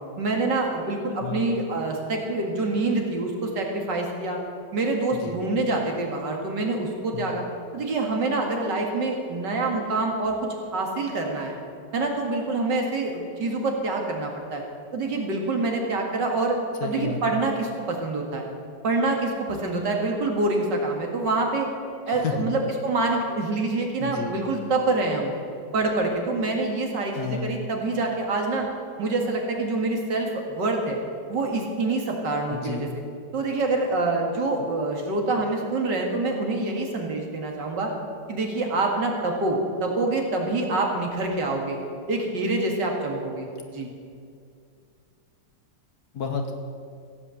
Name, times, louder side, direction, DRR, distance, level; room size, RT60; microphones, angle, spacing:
voice 1, 0.2-4.4 4.7-7.4 7.7-10.4 10.7-11.5 11.9-14.6 14.9-16.6 16.8-18.5 18.8-21.7 22.1-25.3 25.7-28.7 29.0-31.0 31.3-32.9 33.3-37.9 38.3-41.8 42.1-43.9, right 2 dB, 85° right, 1 dB, 2.6 m, -26 dB
voice 2, 16.8-17.4 22.1-22.5 24.0-24.3 27.2-27.5 32.5-32.8 46.1-46.5, left 5 dB, 60° left, 5 dB, 1.8 m, -31 dB
15.5 x 8.6 x 7.8 m, 2.3 s
omnidirectional pair, 1.8 m